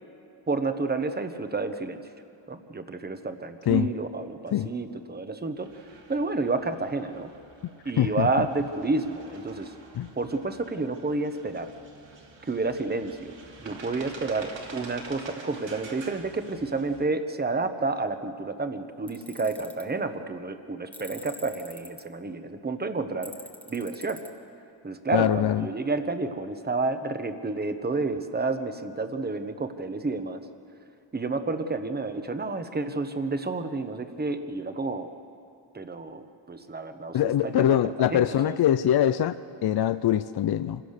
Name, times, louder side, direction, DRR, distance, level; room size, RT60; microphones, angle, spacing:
voice 1, 0.5-2.0 2.5-5.7 6.1-7.3 7.8-9.7 10.2-11.7 12.4-23.3 23.7-24.2 24.8-30.4 31.1-35.1 35.7-38.6, right 3 dB, 20° right, 9 dB, 1.0 m, -30 dB
sound 1, 5.6-17.0, right 3 dB, 75° right, 2.8 m, -47 dB
voice 2, 8.0-8.5 9.9-10.1 25.1-25.7 37.1-40.8, left 11 dB, 55° left, 13 dB, 0.5 m, -23 dB
Tools, 19.1-19.8 20.9-22.0 23.2-24.3, left 1 dB, 5° left, 1.3 m, -45 dB
26.5 x 16.5 x 6.6 m, 2.8 s
wide cardioid pair, 165°, 45 cm